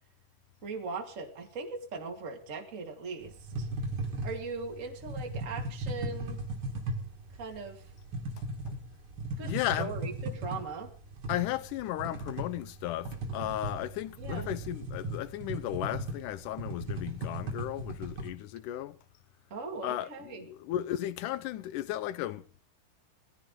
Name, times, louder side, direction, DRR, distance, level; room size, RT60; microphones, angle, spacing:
voice 1, 0.6-3.7 4.2-6.4 7.4-7.9 9.4-10.9 14.2-14.5 19.5-20.5, right 4 dB, 25° right, 2.3 m, -39 dB
sound 1, 3.2-18.3, right 1 dB, 40° right, 3.1 m, -37 dB
voice 2, 9.4-9.9 11.3-19.0 19.8-22.6, left 13 dB, 80° left, 2.3 m, -35 dB
20.5 x 15.0 x 3.8 m
omnidirectional pair, 3.8 m